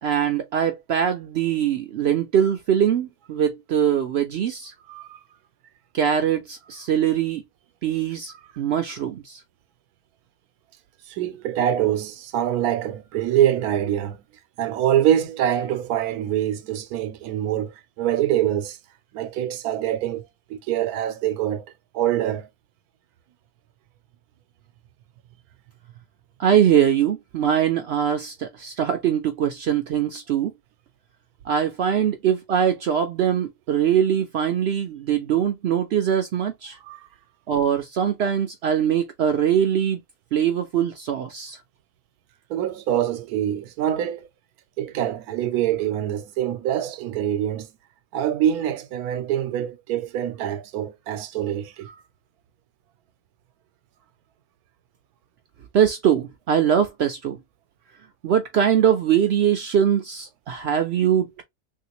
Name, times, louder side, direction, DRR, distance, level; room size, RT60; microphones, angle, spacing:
voice 1, 0.0-4.7 5.9-7.4 7.8-9.4 26.4-30.5 31.5-36.8 37.5-40.0 40.3-41.6 55.7-57.4 58.2-61.4, right 9 dB, 70° right, 0.6 m, -22 dB
voice 2, 4.9-5.2 11.1-14.2 14.6-18.8 19.1-20.2 20.5-21.7 21.9-22.5 36.8-37.0 42.5-44.3 44.8-47.7 48.1-51.9, right 11 dB, 90° right, 1.1 m, -24 dB
3.2 x 2.7 x 2.8 m
omnidirectional pair, 1.6 m